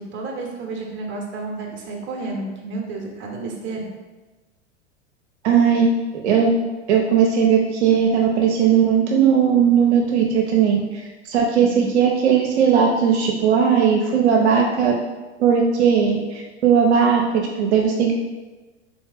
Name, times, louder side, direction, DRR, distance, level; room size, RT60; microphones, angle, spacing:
voice 1, 0.1-3.9 11.5-11.8, right 3 dB, 35° right, 0 dB, 1.0 m, -31 dB
voice 2, 5.4-5.9 6.2-6.5 6.9-14.9 15.4-18.1, right 7 dB, 70° right, 0 dB, 0.7 m, -18 dB
3.5 x 3.1 x 3.5 m, 1.2 s
hypercardioid pair, 100°, 35 cm